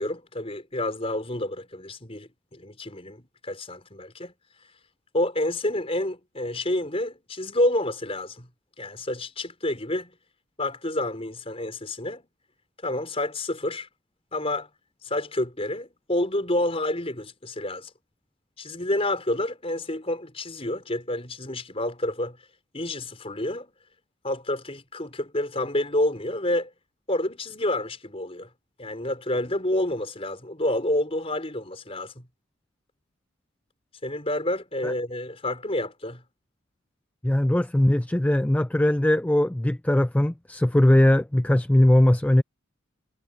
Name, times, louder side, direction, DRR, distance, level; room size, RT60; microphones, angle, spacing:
voice 1, 0.0-4.3 5.1-8.5 8.8-10.1 10.6-12.2 12.8-13.9 14.3-14.7 15.0-17.9 18.6-22.4 22.7-23.7 24.2-26.7 27.1-28.5 28.8-32.2 34.0-36.2, left 1 dB, 30° left, 4.7 m, -29 dB
voice 2, 37.2-42.4, left 1 dB, 5° left, 0.3 m, -20 dB
head